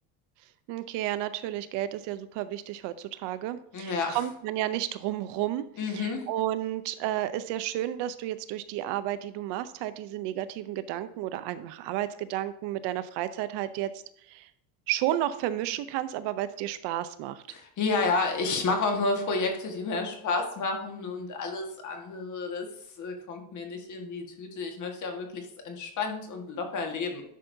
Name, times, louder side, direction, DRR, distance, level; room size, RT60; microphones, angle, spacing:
voice 1, 0.7-5.7 5.9-14.5 14.9-17.4, right 13 dB, 65° right, 13 dB, 0.6 m, -32 dB
voice 2, 3.7-4.2 5.8-6.3 17.5-22.7 23.0-27.2, left 3 dB, 40° left, 3 dB, 1.6 m, -30 dB
11.0 x 5.6 x 2.7 m, 0.75 s
cardioid pair, 135°, 45 cm